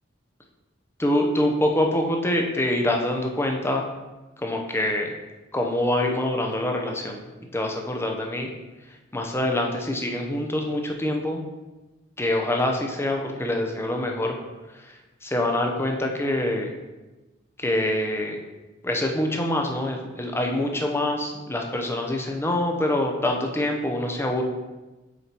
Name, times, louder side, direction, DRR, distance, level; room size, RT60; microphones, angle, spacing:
voice 1, 1.0-3.9 4.4-5.1 5.5-7.2 7.5-8.5 9.1-11.4 12.2-14.3 15.2-16.7 17.6-18.4 18.8-24.4, left 1 dB, 15° left, 2 dB, 0.8 m, -25 dB
6.6 x 4.4 x 4.5 m, 1.1 s
head